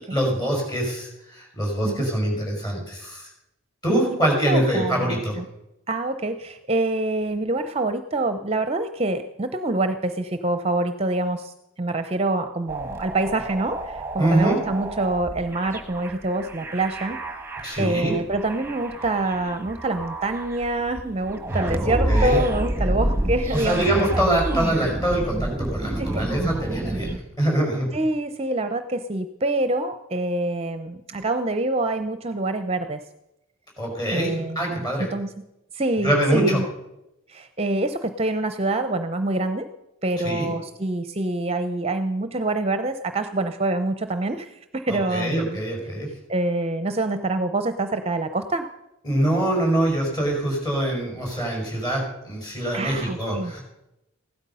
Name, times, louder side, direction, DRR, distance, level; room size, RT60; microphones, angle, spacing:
voice 1, 0.1-3.3 3.8-5.4 14.2-14.6 17.6-18.2 21.8-22.4 23.5-27.1 27.4-28.0 33.8-35.1 36.0-36.6 40.2-40.5 44.9-46.1 49.0-53.6, right 1 dB, 20° left, -1 dB, 5.5 m, -24 dB
voice 2, 3.9-5.4 5.9-11.5 11.8-17.2 17.8-24.3 26.0-26.2 27.9-33.0 34.1-35.3 35.7-36.6 37.3-39.7 40.0-45.6 46.3-48.7 52.7-53.5, right 2 dB, 30° right, 9 dB, 0.6 m, -26 dB
sound 1, 12.7-27.2, right 1 dB, 10° right, 1.2 m, -29 dB
16.0 x 12.5 x 5.5 m, 0.89 s
head